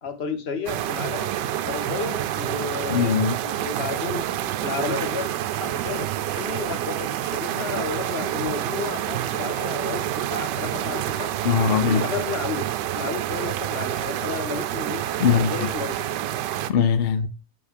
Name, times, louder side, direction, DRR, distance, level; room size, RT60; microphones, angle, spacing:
voice 1, 0.0-1.3 1.6-4.2 4.6-5.3 5.5-11.3 11.9-12.7 12.9-15.0 15.3-16.1, left 6 dB, 45° left, 1.1 m, -32 dB
sound 1, 0.7-16.7, right 12 dB, 85° right, 1.2 m, -28 dB
voice 2, 2.9-3.4 11.4-12.0 15.2-15.5 16.7-17.3, left 7 dB, 90° left, 0.5 m, -20 dB
7.2 x 5.1 x 3.4 m
omnidirectional pair, 1.8 m